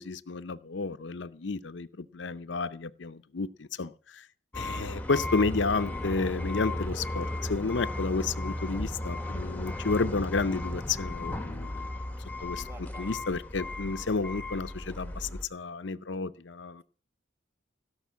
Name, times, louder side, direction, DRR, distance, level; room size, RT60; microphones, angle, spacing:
voice 1, 0.0-4.3 4.5-11.9 12.4-12.7 13.0-16.8, left 4 dB, 65° left, 11 dB, 0.6 m, -31 dB
sound 1, 4.5-15.4, left 1 dB, 10° left, 0.9 m, -35 dB
voice 2, 9.1-9.7 12.6-13.1, right 1 dB, 10° right, 8 dB, 1.2 m, -51 dB
16.5 x 6.6 x 9.3 m, 0.42 s
head